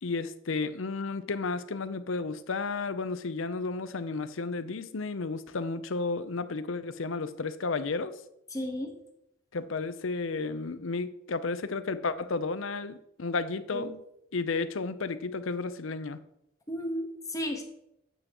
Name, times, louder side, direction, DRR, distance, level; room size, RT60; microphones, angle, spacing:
voice 1, 0.0-8.1 9.5-13.9 14.3-16.2, left 3 dB, 65° left, 13 dB, 0.6 m, -32 dB
voice 2, 8.5-9.0 13.7-13.9 16.7-17.6, equal, 15° left, 3 dB, 1.2 m, -33 dB
9.8 x 8.5 x 3.0 m, 0.78 s
head